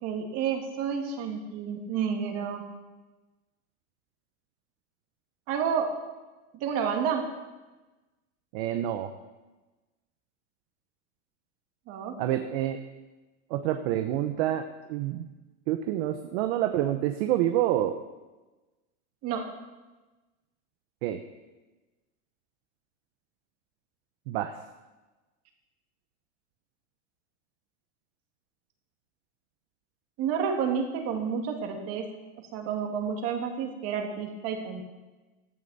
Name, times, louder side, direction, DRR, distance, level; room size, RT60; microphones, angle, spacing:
voice 1, 0.0-2.6 5.5-5.9 6.6-7.3 11.9-12.2 19.2-19.5 30.2-32.1 32.5-34.8, right 7 dB, 40° right, 3 dB, 2.1 m, -30 dB
voice 2, 8.5-9.1 12.2-12.8 13.5-15.3 15.7-17.9 21.0-21.2 24.3-24.6, right 12 dB, 55° right, 7 dB, 0.9 m, -27 dB
15.5 x 10.5 x 4.1 m, 1.2 s
supercardioid pair, 160°, 37 cm